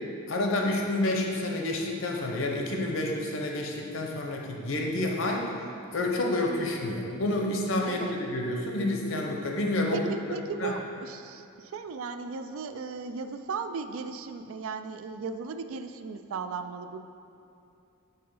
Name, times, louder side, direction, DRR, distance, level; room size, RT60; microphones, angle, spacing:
voice 1, 0.3-5.5 5.9-10.0 10.6-10.7, left 1 dB, 65° left, 1 dB, 0.8 m, -29 dB
voice 2, 9.9-17.0, right 5 dB, 75° right, 9 dB, 0.3 m, -36 dB
5.6 x 3.8 x 5.4 m, 2.6 s
head